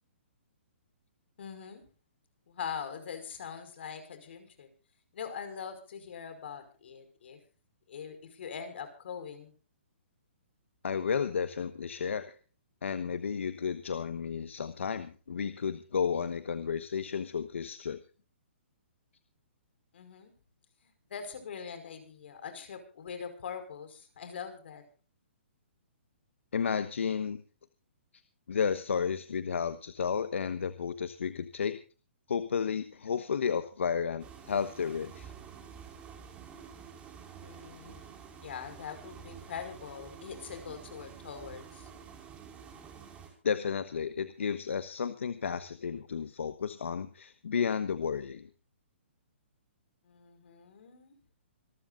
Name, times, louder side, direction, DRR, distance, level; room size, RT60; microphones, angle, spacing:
voice 1, 1.4-1.8 2.5-4.7 5.1-7.4 7.9-9.5 19.9-20.3 20.8-24.8 37.4-38.1 38.4-41.9 50.0-51.1, left 7 dB, 60° left, 9 dB, 5.4 m, -42 dB
voice 2, 10.8-12.3 12.8-18.0 26.5-27.4 28.5-31.8 32.3-35.3 43.4-48.5, left 6 dB, 80° left, 11 dB, 1.2 m, -32 dB
sound 1, 34.2-43.3, right 7 dB, 15° right, 5.2 m, -49 dB
26.0 x 13.0 x 2.5 m, 0.37 s
hypercardioid pair, 150°, 7 cm